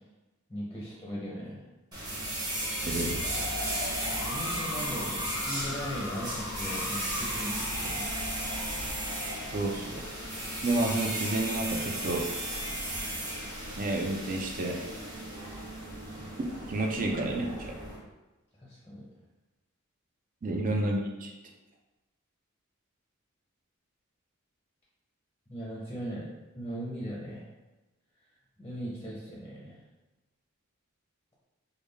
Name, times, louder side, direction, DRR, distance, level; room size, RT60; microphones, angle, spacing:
voice 1, 0.5-1.6 4.1-8.1 18.6-19.1 20.5-20.6 25.5-26.3 26.6-27.5 28.6-29.8, equal, 10° left, -6 dB, 0.6 m, -38 dB
sound 1, 1.9-18.0, right 1 dB, 20° right, 0.9 m, -35 dB
sound 2, 2.7-13.6, left 3 dB, 70° left, 0.4 m, -41 dB
voice 2, 2.9-3.2 9.5-10.0 10.6-12.2 13.8-14.8 16.7-17.7 20.4-21.3, right 2 dB, 40° right, 1 dB, 0.5 m, -30 dB
3.5 x 2.3 x 3.3 m, 1.1 s
head